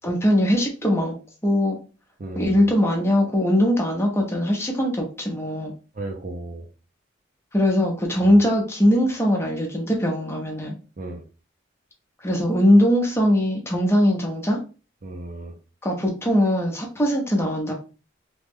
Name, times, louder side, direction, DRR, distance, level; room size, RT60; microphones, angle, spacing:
voice 1, 0.0-1.1 1.4-1.8 2.4-5.7 7.5-10.8 12.2-14.6 15.8-17.7, equal, 15° left, 0 dB, 0.7 m, -21 dB
voice 2, 2.2-2.7 5.9-6.7 8.2-8.4 11.0-11.2 15.0-15.5, right 2 dB, 40° right, 2 dB, 0.5 m, -35 dB
3.0 x 2.3 x 3.5 m, 0.34 s
head